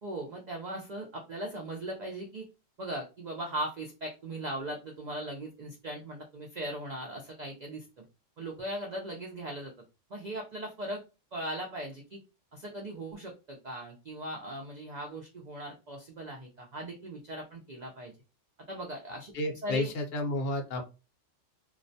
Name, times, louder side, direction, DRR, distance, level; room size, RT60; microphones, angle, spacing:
voice 1, 0.0-2.4 2.8-7.9 8.4-9.7 10.1-11.0 11.3-12.2 12.5-18.1 18.7-19.3 19.6-19.9, right 1 dB, 70° right, 1 dB, 0.4 m, -39 dB
voice 2, 19.3-20.8, left 2 dB, 60° left, 3 dB, 0.8 m, -31 dB
2.3 x 2.1 x 2.6 m, 0.29 s
omnidirectional pair, 1.3 m